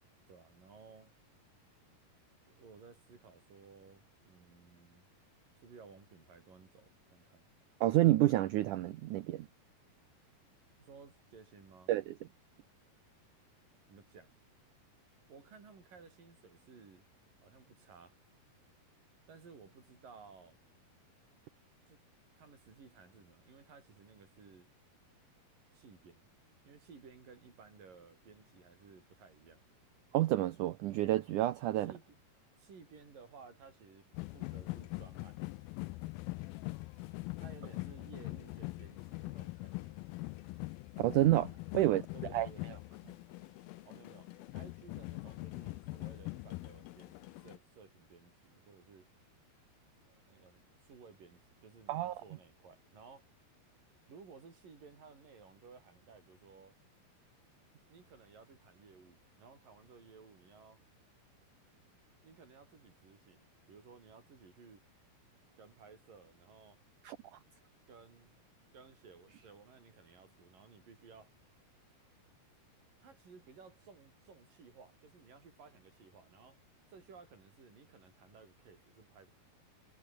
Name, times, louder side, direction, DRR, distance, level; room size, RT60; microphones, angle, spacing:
voice 1, 0.3-1.1 2.5-5.1 5.6-7.5 10.7-11.9 13.9-14.4 15.3-17.1 17.4-18.2 19.3-20.6 21.9-22.0 22.4-24.7 25.7-26.3 26.6-29.6 31.8-32.2 32.6-34.1 34.3-35.4 37.4-40.0 41.8-42.7 43.8-49.1 50.0-53.3 54.1-56.8 57.9-60.8 62.2-64.8 65.6-66.8 67.9-68.4 68.7-71.4 73.0-76.6 76.9-79.3, right 5 dB, 55° right, 7.2 m, -57 dB
voice 2, 7.8-9.5 11.9-12.1 30.1-31.9 41.0-42.0 42.3-42.5 51.9-52.1 67.1-67.2, right 15 dB, 80° right, 1.8 m, -29 dB
sound 1, 34.1-47.6, left 23 dB, 85° left, 2.1 m, -43 dB
omnidirectional pair, 4.7 m